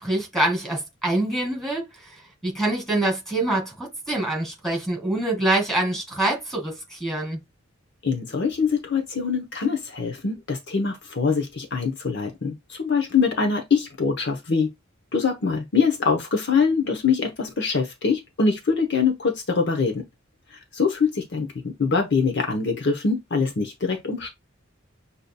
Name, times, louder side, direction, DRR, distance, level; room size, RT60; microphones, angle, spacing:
voice 1, 0.0-1.8 2.4-7.4, right 1 dB, ahead, 2.0 m, -25 dB
voice 2, 8.0-14.7 15.1-20.0 20.5-24.3, left 5 dB, 60° left, 0.8 m, -24 dB
6.7 x 2.7 x 2.2 m
head